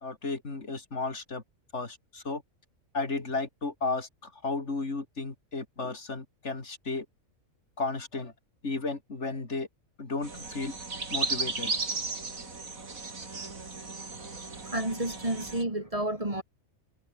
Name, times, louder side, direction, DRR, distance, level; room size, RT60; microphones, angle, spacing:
voice 1, 0.0-1.4 1.7-2.4 2.9-7.1 7.8-8.3 8.6-9.7 10.0-10.7 11.1-11.7, left 3 dB, 55° left, 3.5 m, -34 dB
sound 1, 10.2-15.6, right 3 dB, 90° right, 3.7 m, -35 dB
voice 2, 14.6-16.4, right 1 dB, 25° right, 3.9 m, -31 dB
omnidirectional pair, 1.4 m